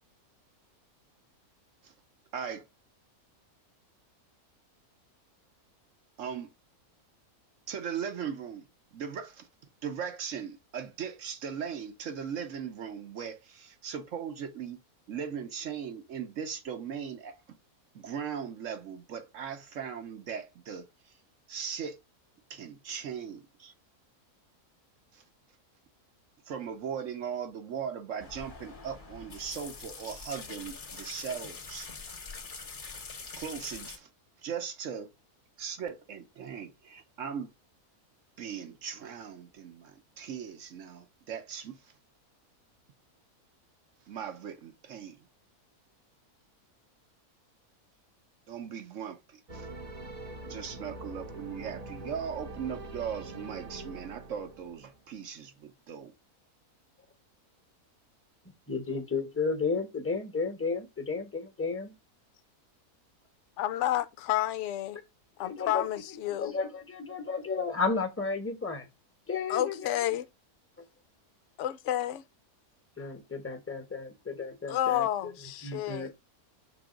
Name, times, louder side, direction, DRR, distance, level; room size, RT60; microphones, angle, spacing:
voice 1, 2.3-2.7 6.2-6.5 7.7-9.5 9.8-14.8 15.1-17.6 17.9-20.9 21.5-22.0 22.5-23.7 25.1-25.2 26.5-31.9 33.4-34.1 34.4-35.1 35.6-37.5 38.4-41.8 44.1-45.2 48.5-49.7 50.4-56.1, right 7 dB, 60° right, 1.3 m, -38 dB
sound 1, 28.2-34.0, left 4 dB, 35° left, 1.0 m, -44 dB
sound 2, 49.5-55.0, right 2 dB, 30° right, 0.9 m, -43 dB
voice 2, 58.7-61.9 65.4-65.8 66.3-68.9 69.3-69.9 73.0-75.3 75.6-76.1, left 4 dB, 10° left, 1.0 m, -33 dB
voice 3, 63.6-65.0 65.4-66.5 69.5-70.3 71.6-72.2 74.7-76.1, left 13 dB, 65° left, 0.8 m, -30 dB
6.1 x 3.5 x 5.0 m
omnidirectional pair, 1.6 m